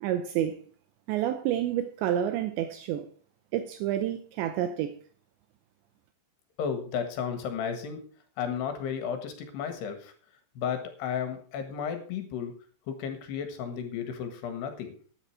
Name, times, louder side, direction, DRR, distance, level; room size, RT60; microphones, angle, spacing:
voice 1, 0.0-0.6 1.1-3.1 3.5-4.9, right 11 dB, 80° right, 2.8 m, -29 dB
voice 2, 6.6-8.0 8.4-10.1 10.6-12.5 12.9-14.9, left 7 dB, 65° left, 3.3 m, -33 dB
12.0 x 10.0 x 4.7 m
omnidirectional pair, 5.7 m